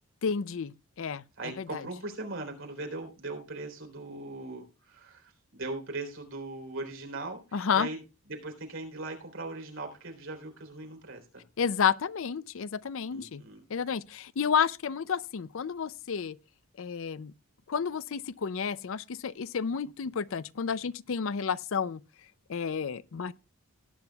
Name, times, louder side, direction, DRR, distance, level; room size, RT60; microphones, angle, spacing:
voice 1, 0.2-1.2 1.6-1.8 7.5-7.9 11.6-13.4 13.7-16.4 16.8-17.3 17.7-22.0 22.5-23.3, left 6 dB, 60° left, 0.5 m, -31 dB
voice 2, 1.4-8.0 8.3-11.4 13.1-13.6, right 2 dB, 60° right, 3.7 m, -39 dB
18.5 x 9.8 x 2.3 m
head